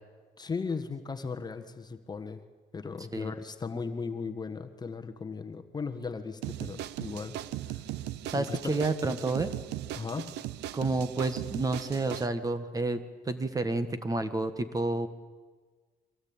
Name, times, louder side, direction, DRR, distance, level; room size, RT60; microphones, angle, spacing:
voice 1, 0.4-2.4 2.7-7.9 8.3-8.8 9.9-10.5, left 4 dB, 25° left, 7 dB, 1.4 m, -37 dB
sound 1, 6.4-12.3, right 13 dB, 85° right, 0.8 m, -38 dB
voice 2, 8.3-9.5 10.7-15.1, right 2 dB, 20° right, 11 dB, 1.5 m, -30 dB
24.5 x 17.5 x 8.8 m, 1.4 s
cardioid pair, 110°, 17 cm